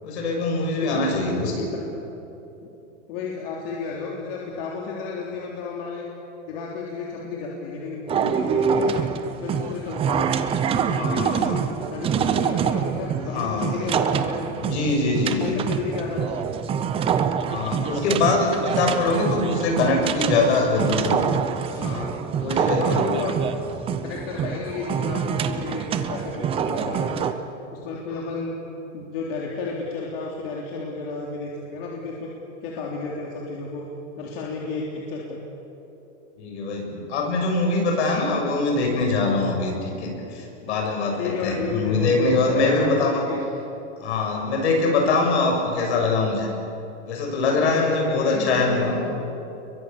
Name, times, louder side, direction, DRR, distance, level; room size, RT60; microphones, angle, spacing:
voice 1, 0.0-1.7 11.0-11.6 13.3-13.9 14.6-15.6 17.5-21.4 21.7-21.8 22.3-23.0 36.4-43.2 44.0-46.5 47.1-49.0, left 3 dB, 70° left, 2 dB, 6.9 m, -23 dB
voice 2, 0.8-1.2 1.7-1.8 2.6-2.7 3.1-6.1 6.5-9.1 9.4-10.3 10.7-14.8 15.3-16.6 21.7-22.2 22.8-23.4 24.0-27.3 27.7-28.5 28.9-32.3 32.6-33.9 34.2-35.4 41.1-43.4 47.6-49.0, left 4 dB, 55° left, -2 dB, 3.6 m, -32 dB
sound 1, 8.1-27.3, right 7 dB, 15° right, 0.7 m, -26 dB
29.0 x 22.5 x 6.9 m, 3.0 s
supercardioid pair, 160°, 35 cm